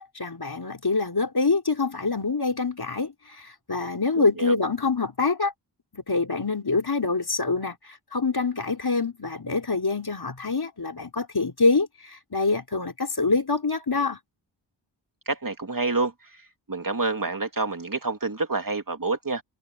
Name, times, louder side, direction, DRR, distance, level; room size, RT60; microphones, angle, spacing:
voice 1, 0.0-5.5 5.9-7.8 8.1-14.2, left 3 dB, 55° left, 4.4 m, -25 dB
voice 2, 15.3-16.1 16.7-19.4, right 3 dB, 45° right, 2.8 m, -27 dB
cardioid pair, 45°, 46 cm